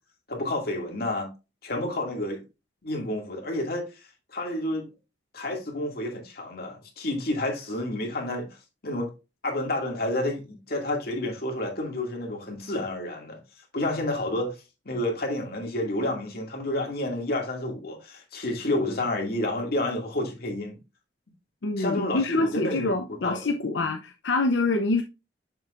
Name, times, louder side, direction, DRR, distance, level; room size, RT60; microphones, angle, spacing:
voice 1, 0.3-1.3 1.6-2.4 2.8-3.8 4.3-4.9 5.3-8.5 8.8-9.1 9.4-13.4 13.7-14.5 14.9-20.8 21.8-23.5 23.8-23.9, left 1 dB, 55° left, 2.2 m, -30 dB
voice 2, 21.6-25.0, left 3 dB, 85° left, 0.7 m, -26 dB
6.9 x 6.1 x 2.5 m
head